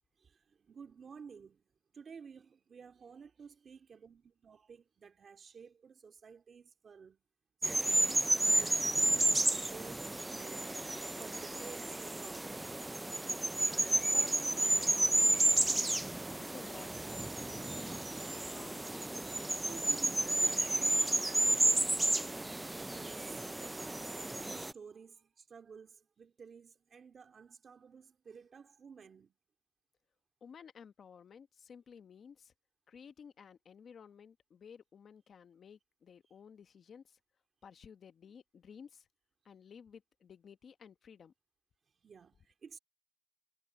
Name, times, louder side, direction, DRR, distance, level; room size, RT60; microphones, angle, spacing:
voice 1, 0.2-1.6 1.9-7.2 7.6-10.1 10.4-12.5 19.6-22.4 22.8-23.5 23.9-29.3 42.0-42.8, right 6 dB, 40° right, 2.2 m, -53 dB
sound 1, 7.6-24.7, right 2 dB, 10° right, 0.3 m, -32 dB
voice 2, 13.9-15.9 16.3-19.0 30.4-32.5 32.9-37.2 37.6-39.1 39.4-41.3, left 7 dB, 45° left, 1.2 m, -55 dB
cardioid pair, 130°, 0 cm